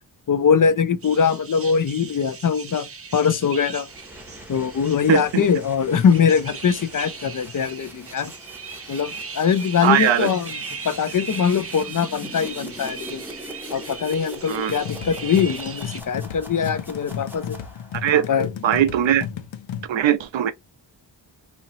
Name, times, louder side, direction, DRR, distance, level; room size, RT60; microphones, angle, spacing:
voice 1, 0.3-2.9 3.1-3.9 4.5-8.3 8.9-10.6 10.8-13.2 13.7-17.6 18.1-18.5, left 6 dB, 45° left, 0.5 m, -22 dB
sound 1, 1.0-16.0, right 5 dB, 30° right, 0.5 m, -38 dB
sound 2, 3.8-18.1, equal, 5° right, 0.8 m, -41 dB
voice 2, 9.8-10.3 14.5-14.7 17.9-18.2 18.6-19.3 19.9-20.5, right 10 dB, 80° right, 0.6 m, -19 dB
sound 3, 14.7-19.8, left 8 dB, 80° left, 0.7 m, -33 dB
4.3 x 2.8 x 2.6 m
wide cardioid pair, 130°, 45 cm